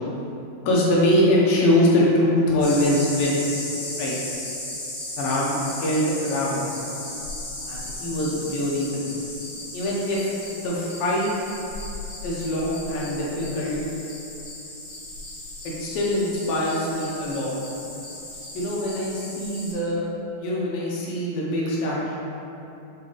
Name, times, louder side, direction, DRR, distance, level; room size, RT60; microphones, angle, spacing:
voice 1, 0.7-3.6 4.0-4.2 5.2-6.7 7.7-9.1 9.7-11.3 12.2-13.8 15.6-17.5 18.5-20.1 20.3-22.2, left 1 dB, 75° left, -5 dB, 2.3 m, -23 dB
sound 1, 2.6-19.7, left 1 dB, 60° left, 1.1 m, -36 dB
7.5 x 3.4 x 3.9 m, 2.9 s
omnidirectional pair, 4.6 m